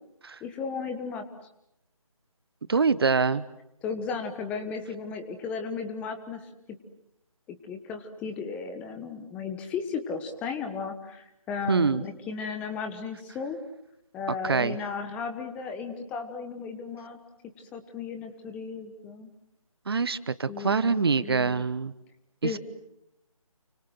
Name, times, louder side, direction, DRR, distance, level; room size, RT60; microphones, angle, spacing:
voice 1, 0.4-1.3 3.8-6.8 7.6-13.6 14.1-17.2 17.6-19.3 20.5-21.6 22.4-22.6, left 5 dB, 5° left, 7 dB, 1.2 m, -35 dB
voice 2, 2.7-3.4 11.7-12.0 14.4-14.8 19.9-21.9 22.4-22.6, right 5 dB, 45° right, 17 dB, 1.2 m, -25 dB
30.0 x 25.0 x 7.7 m, 0.86 s
figure-of-eight pair, 155°, 18 cm